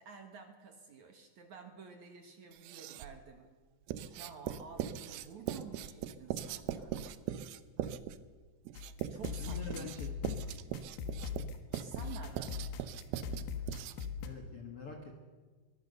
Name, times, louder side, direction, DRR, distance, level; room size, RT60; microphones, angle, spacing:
voice 1, 0.0-3.5 4.0-7.1 9.1-10.1 11.7-12.9, right 5 dB, 55° right, 5 dB, 2.4 m, -51 dB
Writing, 2.5-3.2 3.9-14.2, right 11 dB, 75° right, 2.5 m, -40 dB
sound 1, 8.8-14.3, left 6 dB, 80° left, 3.5 m, -41 dB
voice 2, 9.4-10.5 14.2-15.2, left 4 dB, 60° left, 4 dB, 1.5 m, -45 dB
23.0 x 19.0 x 6.8 m, 1.4 s
omnidirectional pair, 5.0 m